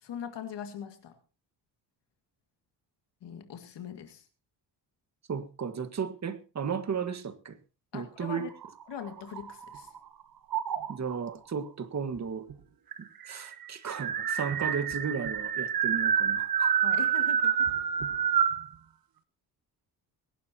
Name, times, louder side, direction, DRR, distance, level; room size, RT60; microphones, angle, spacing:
voice 1, 0.0-1.2 3.2-4.2 7.9-8.5 8.9-9.9 10.8-10.9 16.8-17.7, left 8 dB, 75° left, 2.2 m, -41 dB
voice 2, 5.3-7.6 7.9-8.5 10.9-12.5 13.0-16.8, right 6 dB, 40° right, 1.7 m, -34 dB
sound 1, 8.5-10.0 10.5-11.2 12.2-12.3 12.5-12.6 12.9-18.7, right 8 dB, 55° right, 1.4 m, -28 dB
21.5 x 11.5 x 2.9 m
cardioid pair, 105°, 42 cm